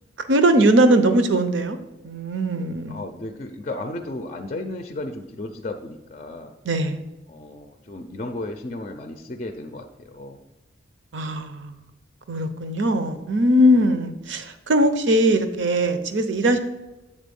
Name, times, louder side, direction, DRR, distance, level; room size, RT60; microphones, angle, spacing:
voice 1, 0.3-1.8 2.0-3.0 6.6-7.0 11.1-11.7 12.3-16.6, right 1 dB, 75° right, 8 dB, 0.7 m, -20 dB
voice 2, 2.9-6.5 7.3-10.4 16.4-16.6, left 2 dB, 35° left, 6 dB, 0.4 m, -34 dB
7.4 x 4.1 x 5.2 m, 1.0 s
head